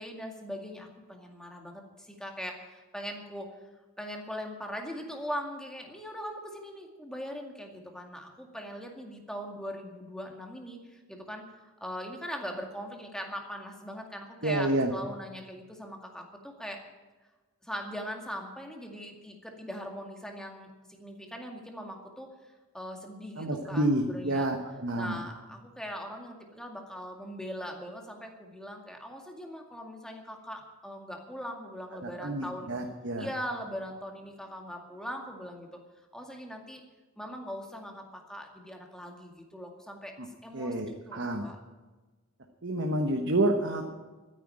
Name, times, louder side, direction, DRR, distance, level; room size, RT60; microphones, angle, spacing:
voice 1, 0.0-3.5 4.0-16.8 17.6-20.7 21.0-24.5 25.0-32.7 33.2-35.8 36.1-36.8 37.2-40.1 40.4-41.6, equal, 5° left, 2 dB, 2.1 m, -40 dB
voice 2, 14.4-14.9 23.4-25.2 32.0-33.3 40.5-41.4 42.6-44.0, right 1 dB, 55° right, 2 dB, 1.3 m, -29 dB
13.0 x 10.0 x 8.9 m, 1.2 s
head